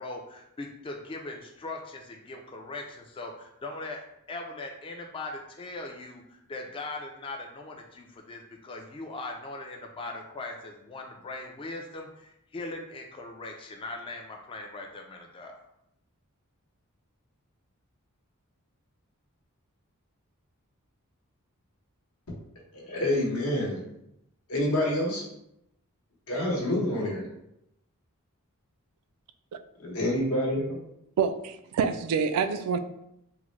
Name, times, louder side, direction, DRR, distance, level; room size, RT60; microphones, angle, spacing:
voice 1, 0.0-4.0 4.3-15.5, left 2 dB, 25° left, 0.3 m, -40 dB
voice 2, 22.7-23.8 24.5-25.2 26.3-27.3 29.8-30.8, left 1 dB, 70° left, 0.9 m, -27 dB
voice 3, 31.2-32.8, right 6 dB, 85° right, 0.3 m, -27 dB
3.5 x 2.1 x 3.0 m
head